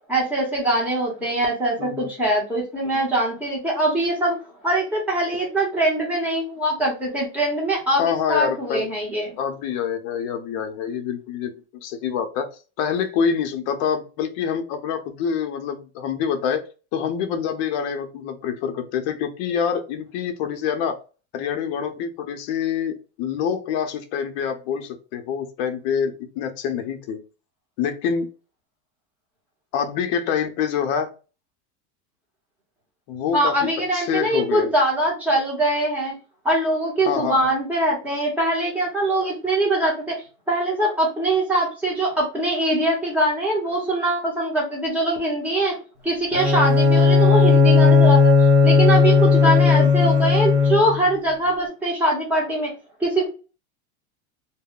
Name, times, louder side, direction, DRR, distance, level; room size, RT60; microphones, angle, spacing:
voice 1, 0.1-9.4 33.3-36.1 36.4-53.3, right 1 dB, 5° right, -3 dB, 0.8 m, -23 dB
voice 2, 1.8-2.1 8.0-8.9 9.4-11.5 11.8-12.5 12.8-16.6 16.9-21.0 21.3-27.2 27.8-28.3 29.7-31.1 33.1-34.7 37.1-37.5 49.4-50.1, left 7 dB, 40° left, 6 dB, 0.5 m, -26 dB
Bowed string instrument, 46.3-51.1, left 5 dB, 85° right, 1.1 m, -15 dB
2.3 x 2.1 x 3.6 m, 0.33 s
supercardioid pair, 160°, 34 cm